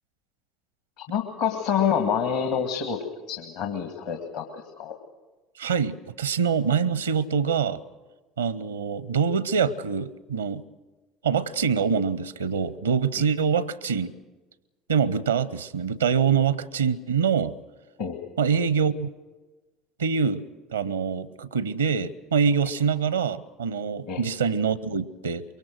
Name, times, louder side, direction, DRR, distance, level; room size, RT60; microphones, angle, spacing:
voice 1, 1.0-4.9 18.0-18.2 24.1-24.2, left 7 dB, 60° left, 5 dB, 1.8 m, -27 dB
voice 2, 5.6-7.8 8.4-10.6 11.2-14.1 14.9-17.6 18.4-19.1 20.0-20.4 20.7-25.4, right 6 dB, 75° right, 20 dB, 0.7 m, -25 dB
23.5 x 23.5 x 6.3 m, 1.2 s
figure-of-eight pair, 60°, 0 cm